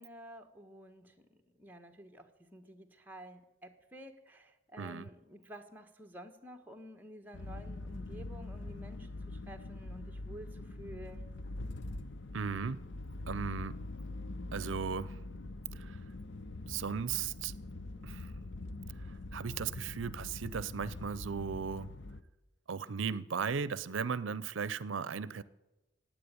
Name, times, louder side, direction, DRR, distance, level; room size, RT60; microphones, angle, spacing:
voice 1, 0.0-11.3, right 1 dB, 10° right, 1.3 m, -51 dB
sound 1, 7.3-22.2, left 2 dB, 70° left, 0.8 m, -43 dB
voice 2, 12.3-12.8 13.3-13.8 14.5-15.2 15.7-16.0 16.7-17.6 18.0-18.3 19.0-21.9 22.7-25.4, right 6 dB, 85° right, 0.6 m, -36 dB
16.5 x 9.2 x 9.5 m
head